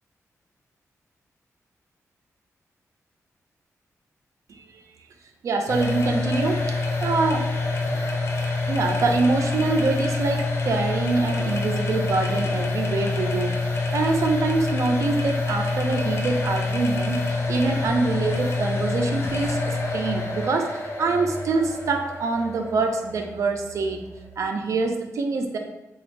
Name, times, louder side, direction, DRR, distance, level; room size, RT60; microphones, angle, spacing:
voice 1, 5.4-7.5 8.7-13.6 13.9-24.1 24.4-25.6, right 3 dB, 65° right, 4 dB, 0.4 m, -25 dB
sound 1, 5.7-24.4, left 3 dB, 50° left, 0.5 m, -27 dB
4.0 x 2.3 x 3.2 m, 0.96 s
wide cardioid pair, 150°, 6 cm